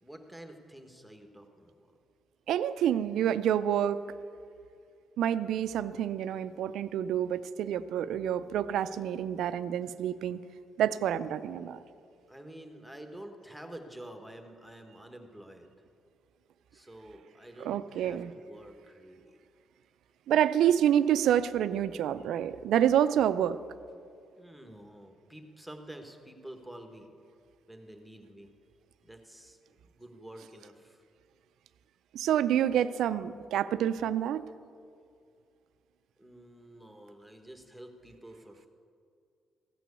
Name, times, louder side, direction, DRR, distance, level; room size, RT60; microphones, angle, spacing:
voice 1, 0.0-1.8 9.8-9.9 12.3-15.7 16.7-19.4 24.4-27.2 27.7-28.5 29.0-29.6 29.9-31.0 36.2-38.7, right 1 dB, ahead, 5 dB, 1.3 m, -49 dB
voice 2, 2.5-4.0 5.2-10.4 10.8-11.8 17.6-18.3 20.3-23.6 32.1-34.4, right 10 dB, 80° right, 14 dB, 0.4 m, -28 dB
15.0 x 6.0 x 8.2 m, 2.4 s
cardioid pair, 90°, 0 cm